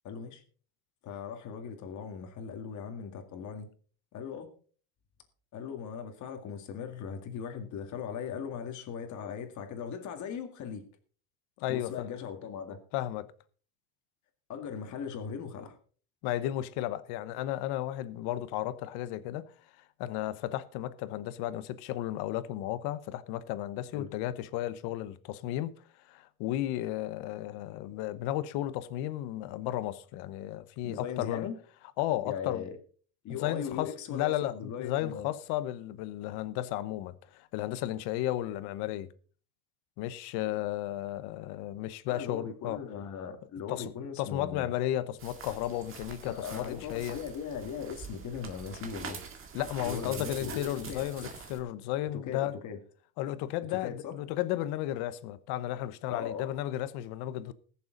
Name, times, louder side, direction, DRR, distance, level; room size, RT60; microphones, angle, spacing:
voice 1, 0.0-0.4 1.0-3.7 4.1-4.5 5.5-10.9 11.7-12.8 14.5-15.8 23.9-24.1 30.8-31.6 32.2-32.7 33.2-35.3 42.1-44.7 46.2-49.2 49.9-51.1 52.1-52.8 53.7-54.1 56.1-56.5, left 7 dB, 40° left, 2.1 m, -39 dB
voice 2, 11.6-12.1 12.9-13.3 16.2-19.5 20.0-25.7 26.1-31.5 32.0-32.6 33.3-39.1 40.0-42.8 43.7-43.9 44.2-47.2 49.5-52.6 53.2-57.5, left 13 dB, 65° left, 1.0 m, -34 dB
sound 1, 45.2-51.6, right 6 dB, 30° right, 1.9 m, -44 dB
20.5 x 7.0 x 3.9 m
cardioid pair, 160°, 43 cm